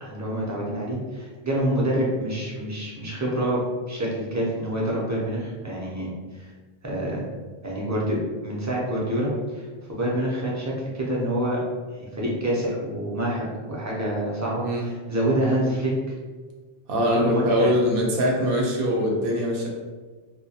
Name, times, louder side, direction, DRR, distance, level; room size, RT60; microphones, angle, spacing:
voice 1, 0.0-6.5 6.8-7.3 7.6-11.6 12.0-15.9 17.1-17.7, right 1 dB, 30° right, -5 dB, 0.3 m, -27 dB
voice 2, 16.9-19.7, equal, 70° right, -1 dB, 0.8 m, -22 dB
2.2 x 2.1 x 2.7 m, 1.4 s
omnidirectional pair, 1.0 m